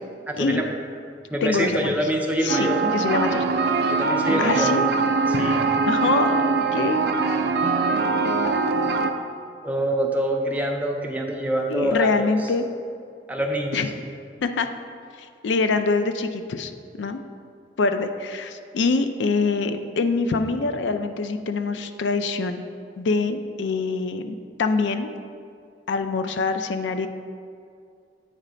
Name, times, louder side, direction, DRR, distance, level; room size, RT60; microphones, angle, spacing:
voice 1, 0.3-0.6 1.3-2.8 3.3-3.4 3.9-4.7 5.4-5.6 9.6-12.3 13.3-13.8, right 1 dB, 10° right, 1 dB, 0.5 m, -25 dB
voice 2, 1.4-2.0 2.4-3.5 4.4-4.8 5.3-7.0 11.7-12.6 13.7-13.9 14.4-14.7 15.2-17.2 17.8-22.6 23.0-25.1 25.9-27.1, left 4 dB, 85° left, 8 dB, 0.4 m, -25 dB
sound 1, 2.5-9.1, right 4 dB, 60° right, 0.4 m, -22 dB
8.6 x 3.2 x 5.0 m, 2.3 s
head